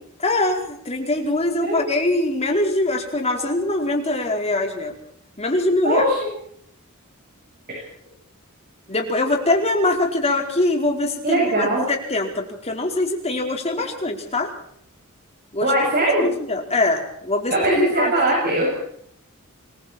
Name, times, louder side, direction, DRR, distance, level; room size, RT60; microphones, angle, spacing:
voice 1, 0.2-4.9 5.4-6.0 8.9-14.5 15.5-15.7 16.2-18.1 18.5-18.6, left 2 dB, 30° left, 2 dB, 4.7 m, -23 dB
voice 2, 5.8-6.2 7.7-7.8 11.2-11.8 15.6-16.3 17.5-18.7, right 1 dB, 45° right, -2 dB, 7.8 m, -20 dB
28.5 x 22.5 x 4.5 m, 0.67 s
head